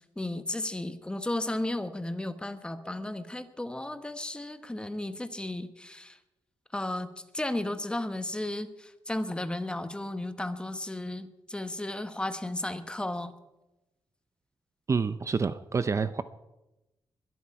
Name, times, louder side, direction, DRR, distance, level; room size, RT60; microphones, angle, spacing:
voice 1, 0.2-6.2 6.7-7.1 7.3-13.3, left 1 dB, 10° left, 10 dB, 1.1 m, -34 dB
voice 2, 14.9-16.2, right 5 dB, 35° right, 13 dB, 0.6 m, -28 dB
22.0 x 12.5 x 4.8 m, 0.98 s
wide cardioid pair, 125°, 9 cm